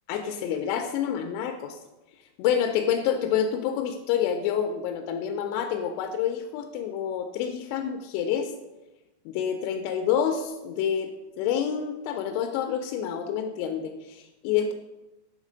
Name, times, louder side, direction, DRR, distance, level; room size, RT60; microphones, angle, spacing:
voice 1, 0.1-1.8 2.4-8.5 9.3-14.7, left 8 dB, 85° left, 6 dB, 2.7 m, -28 dB
7.2 x 3.8 x 5.0 m, 0.99 s
omnidirectional pair, 4.9 m